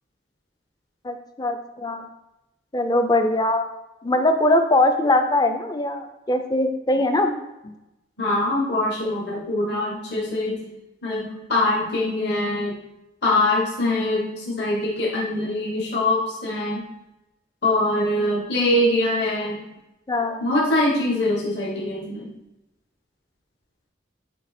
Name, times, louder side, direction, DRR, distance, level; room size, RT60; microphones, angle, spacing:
voice 1, 1.0-2.1 2.7-3.7 4.0-7.3 7.6-7.7 20.1-20.4, left 1 dB, 20° left, 7 dB, 0.4 m, -21 dB
voice 2, 8.2-10.7 11.0-12.8 13.2-16.9 17.6-19.7 20.4-22.3, left 1 dB, 55° left, -4 dB, 1.3 m, -23 dB
8.3 x 2.8 x 4.2 m, 0.94 s
head